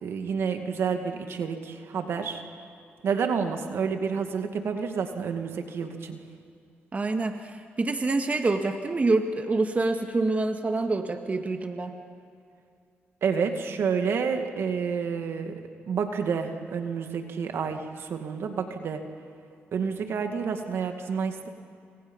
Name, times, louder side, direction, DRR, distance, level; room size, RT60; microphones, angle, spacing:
voice 1, 0.0-2.4 3.0-6.2 13.2-15.5 15.9-19.0 19.7-21.5, right 6 dB, 70° right, 5 dB, 2.2 m, -29 dB
voice 2, 6.9-11.9, right 3 dB, 35° right, 5 dB, 1.9 m, -26 dB
28.5 x 25.5 x 5.6 m, 2.4 s
cardioid pair, 70°, 4 cm